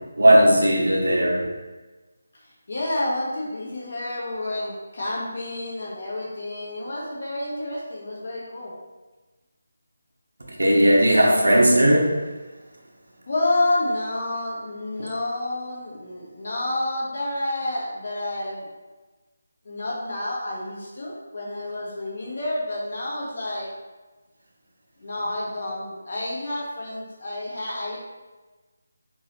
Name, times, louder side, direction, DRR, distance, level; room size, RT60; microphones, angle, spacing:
voice 1, 0.2-1.5 10.6-12.1, right 1 dB, 65° right, -1 dB, 0.9 m, -17 dB
voice 2, 2.7-8.7 13.3-18.7 19.6-23.7 25.0-28.0, left 1 dB, 50° left, -5 dB, 1.4 m, -29 dB
4.5 x 3.0 x 3.2 m, 1.2 s
figure-of-eight pair, 155°, 0 cm